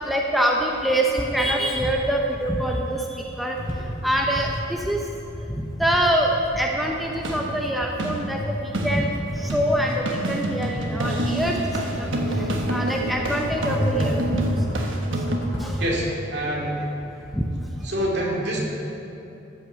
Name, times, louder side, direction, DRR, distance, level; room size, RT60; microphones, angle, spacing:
voice 1, 0.0-5.1 5.3-15.2 15.6-15.8 17.3-17.4, right 1 dB, ahead, -1 dB, 0.6 m, -25 dB
sound 1, 3.6-16.0, equal, 80° left, 2.4 m, -32 dB
sound 2, 7.1-15.4, right 1 dB, 80° right, 1.3 m, -28 dB
voice 2, 15.8-16.9 17.1-17.2 17.8-18.6, equal, 60° right, -3 dB, 2.6 m, -26 dB
13.0 x 6.3 x 7.4 m, 2.9 s
head